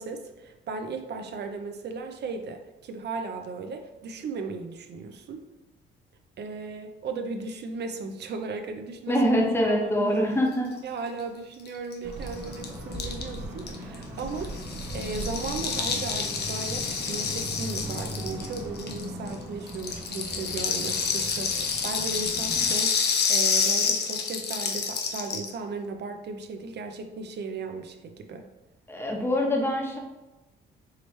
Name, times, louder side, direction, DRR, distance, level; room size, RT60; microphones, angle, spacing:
voice 1, 0.0-5.4 6.4-9.2 9.6-10.2 10.8-14.7 14.9-28.5, right 4 dB, 60° right, 6 dB, 0.5 m, -36 dB
voice 2, 9.1-10.7 28.9-30.0, equal, 10° left, -1 dB, 1.0 m, -24 dB
Rattle (instrument), 11.7-11.8 11.9-12.0 12.2-19.3 19.7-25.5, left 5 dB, 55° left, 0.7 m, -28 dB
sound 1, 12.0-22.7, right 1 dB, 40° right, 1.2 m, -40 dB
sound 2, 12.4-19.4, left 1 dB, 15° right, 0.9 m, -42 dB
4.8 x 3.0 x 3.2 m, 1.0 s
cardioid pair, 90°, 20 cm